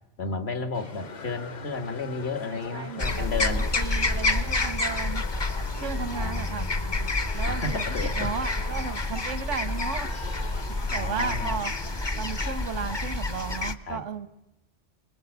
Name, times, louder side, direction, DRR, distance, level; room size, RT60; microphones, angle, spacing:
voice 1, 0.2-3.7 6.0-7.1 7.5-8.3 10.9-11.6 13.9-14.0, left 3 dB, 60° left, 8 dB, 2.1 m, -33 dB
sound 1, 0.7-13.7, left 4 dB, 40° left, 1.1 m, -45 dB
sound 2, 1.0-8.8, left 5 dB, 80° left, 1.8 m, -45 dB
voice 2, 2.4-5.2 5.8-6.7 7.3-10.1 10.3-10.5 10.9-11.7 12.1-14.3, right 6 dB, 90° right, 13 dB, 1.5 m, -35 dB
sound 3, 3.0-13.7, left 2 dB, 25° left, 0.8 m, -28 dB
28.0 x 20.0 x 8.1 m, 0.99 s
omnidirectional pair, 1.2 m